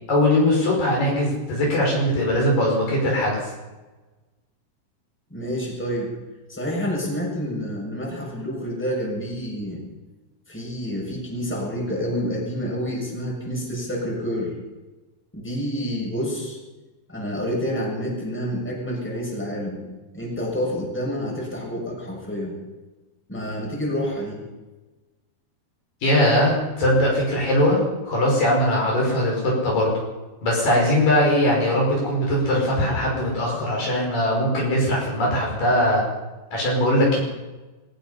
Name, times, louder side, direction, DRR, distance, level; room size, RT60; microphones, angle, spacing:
voice 1, 0.1-3.5 26.0-29.9 30.4-36.0 36.5-37.2, left 1 dB, 50° left, -2 dB, 7.1 m, -20 dB
voice 2, 5.3-6.1 6.5-9.8 10.5-14.5 15.3-16.6 17.1-19.8 20.1-22.6 23.3-24.4, equal, 5° left, -3 dB, 7.0 m, -28 dB
23.0 x 20.0 x 5.8 m, 1.2 s
omnidirectional pair, 4.8 m